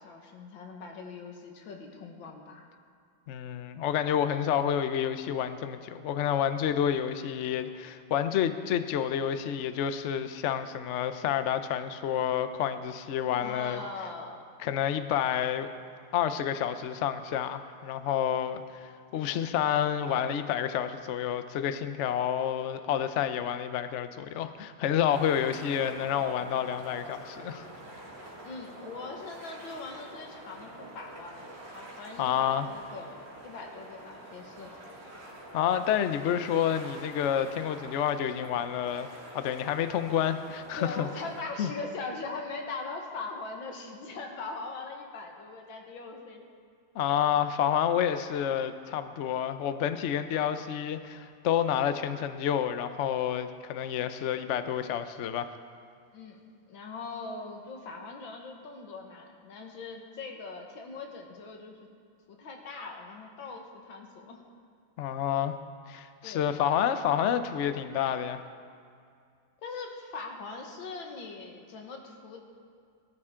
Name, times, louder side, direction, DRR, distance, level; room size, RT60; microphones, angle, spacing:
voice 1, 0.0-2.6 13.4-14.4 28.4-31.5 31.7-34.7 40.8-46.5 56.1-56.4 56.7-61.8 62.3-64.4 66.2-66.5 69.6-72.4, left 3 dB, 90° left, 2 dB, 2.2 m, -41 dB
voice 2, 3.3-13.8 14.6-15.7 16.1-27.7 32.2-32.7 35.5-39.1 39.3-41.1 41.6-41.7 46.9-55.5 65.0-65.5 65.9-68.4, left 9 dB, 70° left, 10 dB, 0.7 m, -29 dB
sound 1, 25.1-41.4, right 1 dB, 40° right, 3.1 m, -46 dB
19.0 x 12.5 x 3.7 m, 2.3 s
omnidirectional pair, 2.1 m